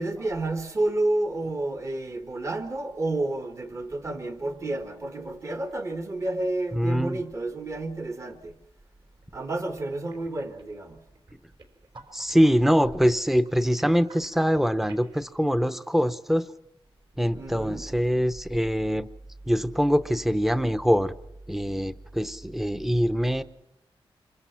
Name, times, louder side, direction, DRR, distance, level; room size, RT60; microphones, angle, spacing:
voice 1, 0.0-8.5 9.3-11.0 17.3-17.9, right 2 dB, 30° right, 1.4 m, -30 dB
voice 2, 6.7-7.2 12.1-16.5 17.2-19.1 19.5-21.1 21.5-23.4, equal, 5° right, 0.8 m, -23 dB
sound 1, 9.1-9.3 9.6-15.3, right 3 dB, 55° right, 3.9 m, -53 dB
27.0 x 23.5 x 5.8 m
wide cardioid pair, 175°, 10 cm